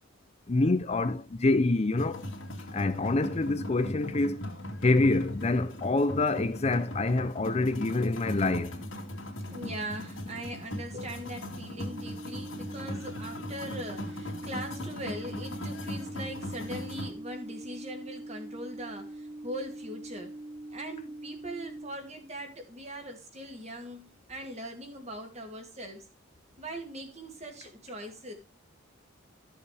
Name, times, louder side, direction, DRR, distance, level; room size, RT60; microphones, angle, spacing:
voice 1, 0.5-2.2 2.7-4.4 4.8-8.8, left 2 dB, 30° left, 0.5 m, -26 dB
sound 1, 2.0-17.1, left 1 dB, 80° left, 2.4 m, -39 dB
voice 2, 9.5-20.3 20.7-26.1 26.6-28.3, right 1 dB, 35° right, 2.4 m, -41 dB
sound 2, 11.9-21.9, right 1 dB, 70° right, 1.8 m, -43 dB
13.0 x 6.9 x 3.3 m
head